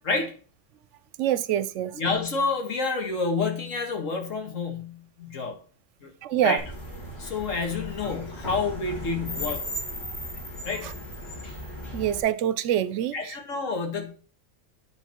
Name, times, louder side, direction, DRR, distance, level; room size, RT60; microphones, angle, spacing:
voice 1, 1.2-2.0 6.2-6.6 10.8-10.9 11.9-13.3, right 11 dB, 75° right, 0.9 m, -25 dB
voice 2, 1.9-5.6 6.0-6.1 6.4-6.6 7.2-9.7 10.7-10.9 13.1-14.1, left 4 dB, 80° left, 1.9 m, -29 dB
sound 1, 6.6-12.2, left 1 dB, 55° left, 2.8 m, -36 dB
10.0 x 4.0 x 4.4 m
omnidirectional pair, 1.3 m